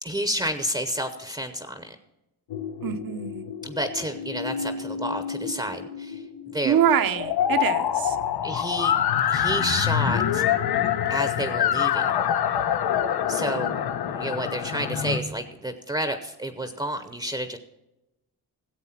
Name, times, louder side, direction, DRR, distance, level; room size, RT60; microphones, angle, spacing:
voice 1, 0.0-2.0 3.6-6.8 8.4-9.0 9.3-10.5 11.1-12.2 13.3-13.7 14.1-17.6, equal, 10° right, 9 dB, 0.7 m, -30 dB
sound 1, 2.5-15.2, left 9 dB, 90° left, 1.0 m, -26 dB
voice 2, 2.8-3.5 6.6-8.2, right 9 dB, 65° right, 11 dB, 0.9 m, -24 dB
15.0 x 8.2 x 5.8 m, 0.94 s
wide cardioid pair, 165°, 37 cm